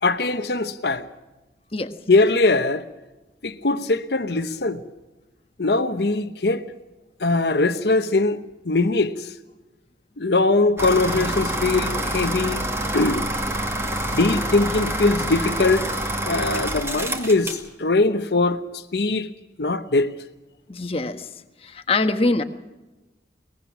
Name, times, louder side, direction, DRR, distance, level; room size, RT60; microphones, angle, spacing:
voice 1, 0.0-1.1 2.1-2.8 3.4-4.8 5.6-6.7 7.2-9.3 10.2-12.7 12.9-13.2 14.1-15.9 16.2-19.3 19.6-20.2, left 3 dB, 70° left, 1.0 m, -21 dB
sound 1, 10.8-17.7, right 1 dB, 15° right, 2.1 m, -27 dB
voice 2, 20.7-21.3 21.6-22.4, left 2 dB, 35° left, 1.3 m, -23 dB
22.5 x 20.0 x 6.2 m
head